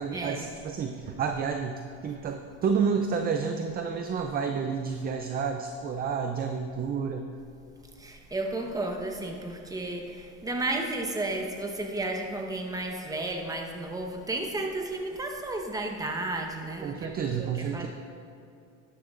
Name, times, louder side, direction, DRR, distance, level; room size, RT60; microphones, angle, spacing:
voice 1, 0.0-7.3 16.8-17.9, right 6 dB, 25° right, 5 dB, 0.4 m, -30 dB
voice 2, 8.0-17.9, right 2 dB, 10° right, 3 dB, 0.9 m, -33 dB
12.0 x 11.5 x 2.5 m, 2.5 s
supercardioid pair, 125°, 36 cm